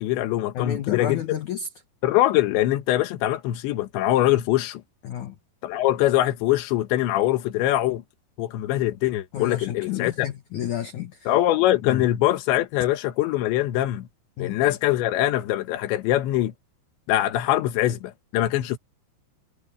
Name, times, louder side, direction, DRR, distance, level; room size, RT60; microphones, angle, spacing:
voice 1, 0.0-1.2 2.0-4.8 5.6-8.0 8.4-10.3 11.3-14.1 14.4-16.5 17.1-18.8, left 14 dB, 85° left, 3.6 m, -23 dB
voice 2, 0.5-1.7 5.0-5.4 9.3-11.3 11.8-12.1 14.4-14.8, left 10 dB, 70° left, 1.9 m, -31 dB
omnidirectional pair, 5.0 m